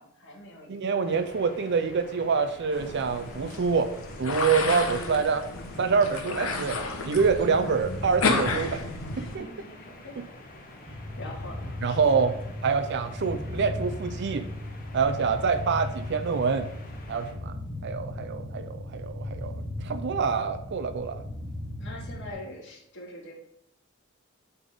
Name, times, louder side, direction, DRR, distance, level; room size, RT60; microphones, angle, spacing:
voice 1, 0.0-1.4 9.1-10.3 10.8-12.9 21.8-23.3, left 1 dB, 60° left, -3 dB, 2.2 m, -45 dB
voice 2, 0.7-3.9 4.2-5.4 5.8-6.8 7.0-8.8 9.2-9.5 11.8-12.3 12.6-14.4 14.9-16.7 17.1-17.5 17.8-19.5 19.8-21.2, right 5 dB, 55° right, 10 dB, 0.5 m, -26 dB
sound 1, 1.0-17.3, left 2 dB, 45° left, 1.4 m, -48 dB
sound 2, 2.7-9.4, left 3 dB, 80° left, 1.2 m, -31 dB
sound 3, 10.9-22.3, left 1 dB, 15° right, 1.3 m, -37 dB
8.5 x 3.6 x 5.1 m, 0.76 s
head